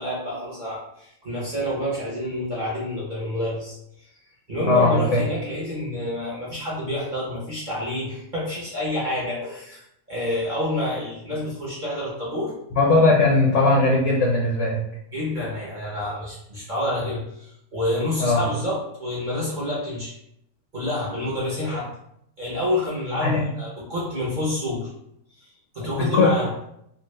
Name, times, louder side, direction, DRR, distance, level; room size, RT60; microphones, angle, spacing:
voice 1, 0.0-4.1 4.5-9.8 10.1-12.6 15.1-20.1 20.7-21.9 22.4-24.9 25.4-25.5 25.7-26.5, left 1 dB, 40° right, -6 dB, 0.7 m, -28 dB
voice 2, 4.7-5.2 12.7-14.8 18.2-18.4 23.2-23.4 26.1-26.3, left 2 dB, 65° left, -3 dB, 0.7 m, -18 dB
2.8 x 2.4 x 3.1 m, 0.75 s
omnidirectional pair, 1.8 m